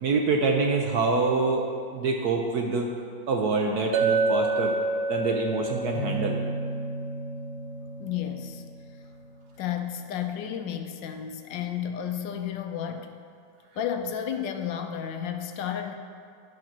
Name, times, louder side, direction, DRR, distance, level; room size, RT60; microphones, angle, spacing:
voice 1, 0.0-1.7 1.9-2.9 3.3-4.7 5.1-6.4, right 3 dB, 65° right, 1 dB, 1.1 m, -25 dB
Chink clink, 3.9-8.4, right 3 dB, 80° right, 1.4 m, -29 dB
sound 1, 5.9-9.6, right 2 dB, 35° left, 1.0 m, -36 dB
voice 2, 8.0-8.6 9.6-13.1 13.8-15.9, left 9 dB, 70° left, 6 dB, 1.2 m, -32 dB
10.5 x 4.8 x 5.9 m, 2.4 s
omnidirectional pair, 2.2 m